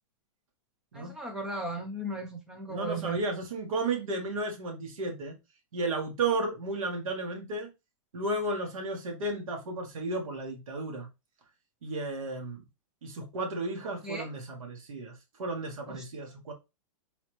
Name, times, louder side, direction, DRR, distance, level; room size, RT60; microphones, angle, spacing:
voice 1, 0.9-3.2 13.8-14.3 15.9-16.1, right 2 dB, 5° right, 0.4 m, -36 dB
voice 2, 2.7-5.4 5.7-7.7 8.1-11.1 11.8-12.6 13.0-16.5, right 2 dB, 85° right, 1.7 m, -33 dB
4.0 x 3.1 x 3.1 m
hypercardioid pair, 175°, 17 cm